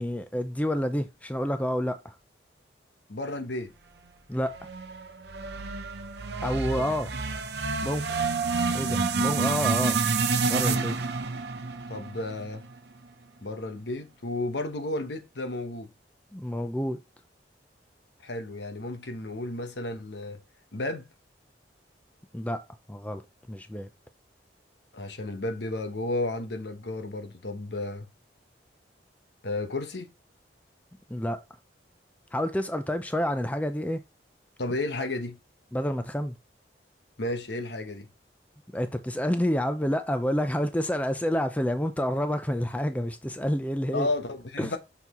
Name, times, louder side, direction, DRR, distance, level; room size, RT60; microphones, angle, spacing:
voice 1, 0.0-2.2 4.3-4.6 6.4-7.1 7.8-8.2 8.7-10.0 10.4-11.0 16.3-17.0 22.3-22.6 22.9-23.2 23.5-23.9 31.1-31.4 32.3-34.0 35.7-36.4 38.7-44.1 44.6-44.7, equal, 10° left, 0.5 m, -28 dB
voice 2, 3.1-3.7 6.8-6.9 9.2-9.4 11.9-12.6 13.4-15.9 18.2-20.4 20.7-21.1 24.9-28.1 29.4-30.1 34.6-35.4 37.2-38.1 43.9-44.8, left 2 dB, 70° left, 1.0 m, -33 dB
sound 1, 4.4-12.8, right 4 dB, 65° right, 0.8 m, -29 dB
6.1 x 5.8 x 3.0 m
head